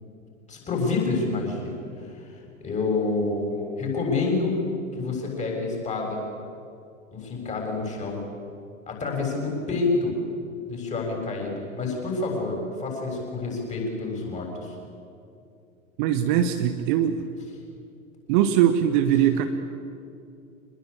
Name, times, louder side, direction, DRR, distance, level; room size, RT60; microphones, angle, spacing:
voice 1, 0.5-4.6 4.9-6.2 7.1-8.2 8.9-10.2 10.7-14.7, left 3 dB, 15° left, 0 dB, 7.1 m, -28 dB
voice 2, 16.0-17.2 18.3-19.5, right 10 dB, 35° right, 8 dB, 1.2 m, -21 dB
26.0 x 20.5 x 8.7 m, 2.6 s
figure-of-eight pair, 100°, 42 cm